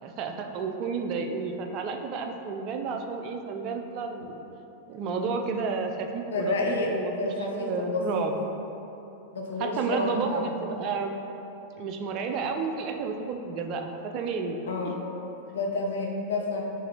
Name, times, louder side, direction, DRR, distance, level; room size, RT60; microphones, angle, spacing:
voice 1, 0.0-4.4 4.9-8.4 9.6-11.1 11.8-14.6 14.8-15.0, right 4 dB, 40° right, 4 dB, 0.3 m, -31 dB
voice 2, 6.3-6.9 7.2-8.2 9.3-10.4 14.7-15.0 15.5-16.6, left 3 dB, 65° left, -1 dB, 0.5 m, -29 dB
4.1 x 2.5 x 3.9 m, 3.0 s
figure-of-eight pair, 90°, 0 cm